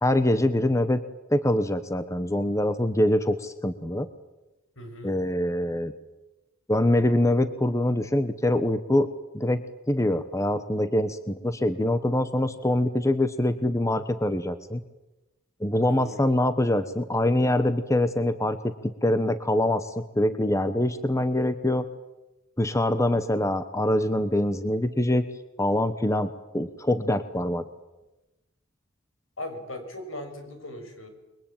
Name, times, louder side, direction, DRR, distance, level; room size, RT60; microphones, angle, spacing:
voice 1, 0.0-1.0 1.3-4.1 5.0-5.9 6.7-9.1 9.3-9.6 9.9-14.8 15.6-21.8 22.6-25.3 25.6-27.6, left 1 dB, 15° left, 11 dB, 1.0 m, -24 dB
voice 2, 4.8-5.2 15.9-16.1 29.4-31.1, left 1 dB, 70° left, 6 dB, 6.2 m, -38 dB
29.0 x 22.5 x 9.1 m, 1.1 s
head